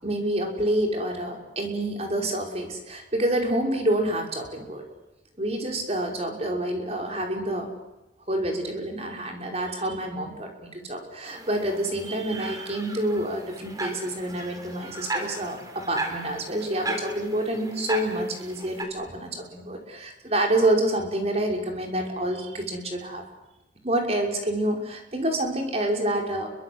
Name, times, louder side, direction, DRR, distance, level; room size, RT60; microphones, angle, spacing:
voice 1, 0.0-4.8 5.4-7.7 8.3-23.2 23.8-26.5, right 1 dB, 35° right, 2 dB, 5.6 m, -28 dB
sound 1, 11.3-18.8, right 2 dB, 20° right, 4.0 m, -36 dB
29.5 x 24.0 x 8.1 m, 0.94 s
head